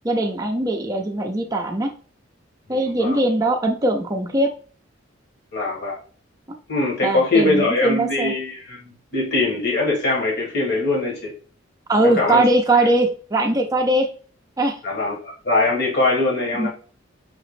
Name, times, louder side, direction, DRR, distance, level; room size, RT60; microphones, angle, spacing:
voice 1, 0.0-1.9 2.7-4.5 7.0-8.3 11.9-14.1 14.6-14.8 16.5-16.7, right 1 dB, 20° right, 3 dB, 0.4 m, -20 dB
voice 2, 2.7-3.2 5.5-6.0 6.7-11.3 12.0-12.4 14.8-16.7, left 2 dB, 55° left, -2 dB, 1.5 m, -22 dB
5.7 x 3.0 x 3.1 m, 0.40 s
head